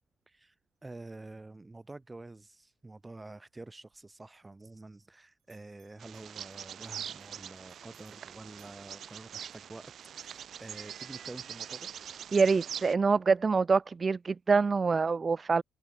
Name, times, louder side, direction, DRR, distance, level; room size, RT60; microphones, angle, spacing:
voice 1, 0.8-11.9, right 2 dB, 20° right, 2.6 m, -48 dB
Bell, 3.8-5.1 5.4-9.9, right 14 dB, 85° right, 5.5 m, -72 dB
Bird vocalization bird call bird song, 6.0-12.9, right 9 dB, 60° right, 1.3 m, -43 dB
voice 2, 12.3-15.6, right 4 dB, 35° right, 0.4 m, -25 dB
cardioid pair, 90°, 0 cm